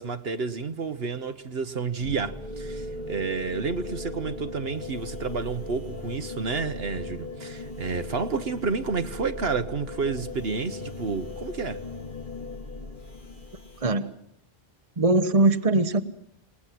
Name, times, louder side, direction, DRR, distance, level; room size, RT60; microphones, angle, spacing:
voice 1, 0.0-11.8, right 4 dB, 65° right, 1.4 m, -30 dB
sound 1, 2.0-13.9, left 2 dB, 50° left, 3.3 m, -38 dB
voice 2, 15.0-16.0, right 2 dB, 35° right, 1.3 m, -21 dB
28.0 x 19.5 x 7.6 m
omnidirectional pair, 1.1 m